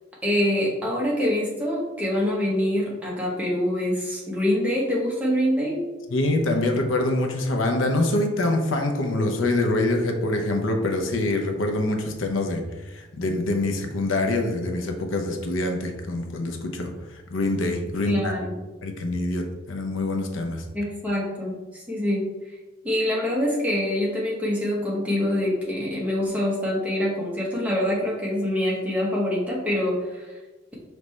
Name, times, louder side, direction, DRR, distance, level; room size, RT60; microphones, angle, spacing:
voice 1, 0.2-5.8 18.0-18.6 20.7-22.2 22.8-30.3, left 1 dB, 5° right, -4 dB, 1.0 m, -25 dB
voice 2, 6.1-18.3 18.8-20.6, left 2 dB, 75° left, 3 dB, 0.6 m, -25 dB
5.1 x 3.3 x 3.1 m, 1.2 s
head